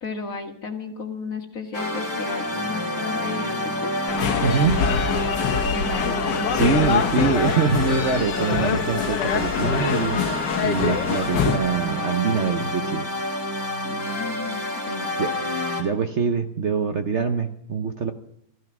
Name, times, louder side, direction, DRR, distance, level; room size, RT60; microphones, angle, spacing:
voice 1, 0.0-3.9 5.7-7.3 13.8-15.3, left 4 dB, 50° left, 5 dB, 1.9 m, -34 dB
sound 1, 1.7-15.8, left 1 dB, 10° right, 3.3 m, -28 dB
sound 2, 4.1-11.6, left 7 dB, 80° left, 1.6 m, -24 dB
voice 2, 4.4-4.8 6.5-10.2 10.6-13.1 15.2-15.3 15.8-18.1, right 6 dB, 50° right, 6 dB, 1.0 m, -24 dB
16.0 x 14.0 x 6.0 m, 0.71 s
omnidirectional pair, 1.9 m